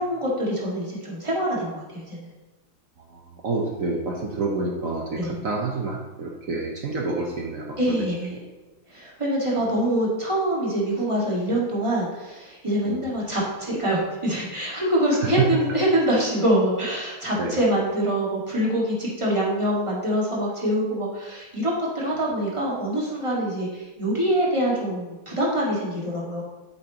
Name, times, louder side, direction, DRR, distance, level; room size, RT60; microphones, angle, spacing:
voice 1, 0.0-2.3 5.2-5.4 7.8-8.4 8.9-26.4, right 1 dB, 15° right, -5 dB, 1.6 m, -25 dB
voice 2, 3.1-8.0 12.8-13.0 15.1-15.5 17.4-17.6 22.6-22.7, right 4 dB, 60° right, 0 dB, 0.8 m, -28 dB
8.1 x 7.8 x 2.9 m, 1.2 s
omnidirectional pair, 2.4 m